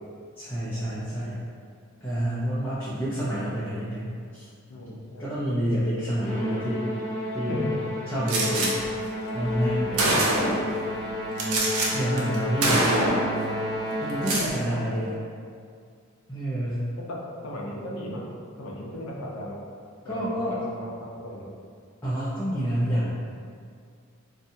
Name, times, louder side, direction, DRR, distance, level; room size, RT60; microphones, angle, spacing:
voice 1, 0.4-1.4 2.0-4.5 5.2-6.9 7.3-7.6 8.1-8.8 9.3-10.3 11.9-12.9 14.0-15.2 16.3-16.9 20.0-20.6 22.0-23.2, equal, 10° left, -13 dB, 0.4 m, -28 dB
voice 2, 2.8-3.1 4.7-5.3 7.5-7.8 9.8-10.2 11.4-11.7 17.0-17.2 17.4-18.2 18.6-19.6 20.0-21.5, equal, 70° left, -3 dB, 0.5 m, -37 dB
Musical instrument, 6.2-14.7, left 1 dB, 35° left, 0.7 m, -31 dB
Gunshot gunfire, 8.3-8.7 9.5-9.6 10.0-10.7 11.4-11.9 12.2-12.4 12.6-13.3 14.1-14.5, right 2 dB, 85° right, 0.5 m, -23 dB
2.6 x 2.2 x 2.6 m, 2.2 s
head